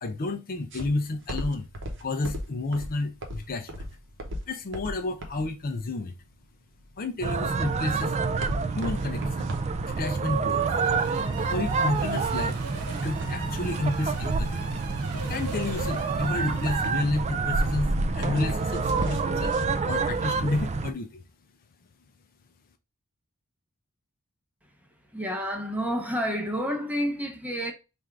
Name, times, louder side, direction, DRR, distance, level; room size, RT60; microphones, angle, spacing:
voice 1, 0.0-1.7 2.0-3.8 4.5-6.2 7.0-8.2 8.7-10.7 11.5-12.6 13.0-14.6 15.3-19.6 19.8-21.2, left 2 dB, 40° left, 0.5 m, -31 dB
sound 1, 0.7-19.7, equal, 55° right, 0.9 m, -38 dB
sound 2, 7.2-20.9, right 4 dB, 30° right, 0.3 m, -28 dB
sound 3, 10.5-16.9, right 3 dB, 90° right, 1.2 m, -41 dB
voice 2, 25.1-27.7, equal, 5° right, 0.8 m, -29 dB
3.5 x 2.5 x 4.4 m
head